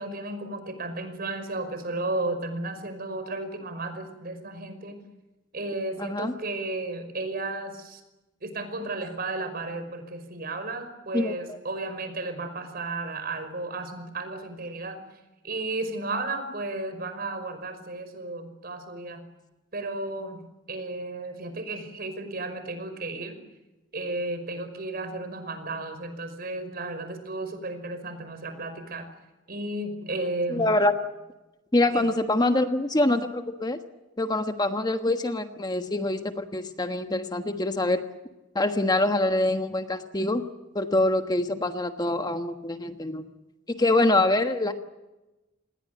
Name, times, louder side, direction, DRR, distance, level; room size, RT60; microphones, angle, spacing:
voice 1, 0.0-5.0 5.5-8.0 8.4-15.0 15.4-19.2 19.7-20.4 20.7-23.4 23.9-29.1 29.5-30.7 31.9-32.1, right 2 dB, 55° right, 9 dB, 5.5 m, -33 dB
voice 2, 6.0-6.3 11.1-11.6 30.5-30.9 31.7-33.8 34.2-38.0 38.5-40.4 40.7-43.2 43.7-44.7, left 2 dB, 20° left, 7 dB, 1.4 m, -25 dB
28.5 x 20.5 x 7.8 m, 1.0 s
head